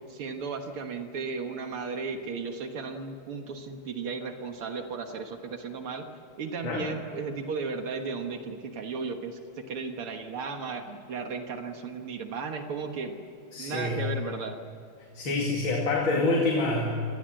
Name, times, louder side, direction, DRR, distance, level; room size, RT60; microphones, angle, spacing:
voice 1, 0.1-6.1 6.4-13.2 13.6-14.6, right 4 dB, 80° right, 5 dB, 2.4 m, -35 dB
voice 2, 13.5-14.1 15.1-17.0, left 2 dB, 65° left, 0 dB, 3.2 m, -27 dB
28.0 x 21.0 x 7.8 m, 2.5 s
omnidirectional pair, 2.4 m